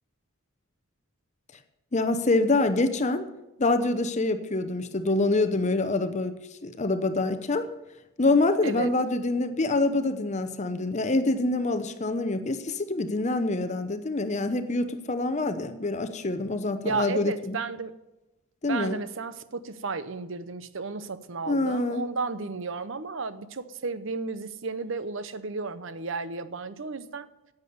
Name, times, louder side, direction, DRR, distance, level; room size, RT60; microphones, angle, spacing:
voice 1, 1.9-3.3 3.6-6.4 6.6-7.7 8.2-17.6 18.6-19.0 21.5-22.1, left 2 dB, 35° left, 10 dB, 0.7 m, -26 dB
voice 2, 8.6-8.9 16.8-17.9 18.7-27.3, right 4 dB, 60° right, 14 dB, 0.8 m, -33 dB
10.5 x 8.2 x 9.3 m, 0.99 s
head